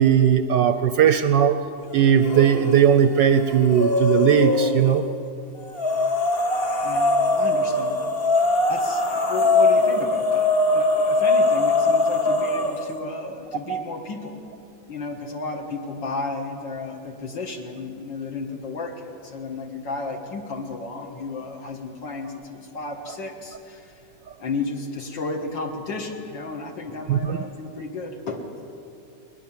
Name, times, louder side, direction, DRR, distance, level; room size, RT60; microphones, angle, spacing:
voice 1, 0.0-1.6 1.9-5.0 13.7-13.8 27.1-27.4, right 9 dB, 70° right, 10 dB, 1.1 m, -18 dB
sound 1, 2.2-2.8 3.2-5.0 5.7-12.9, left 2 dB, 35° left, 1.1 m, -21 dB
voice 2, 6.8-8.0 8.7-14.4 14.9-23.9 24.4-28.4, left 3 dB, 60° left, 2 dB, 2.1 m, -33 dB
20.5 x 20.0 x 7.4 m, 2.7 s
omnidirectional pair, 2.4 m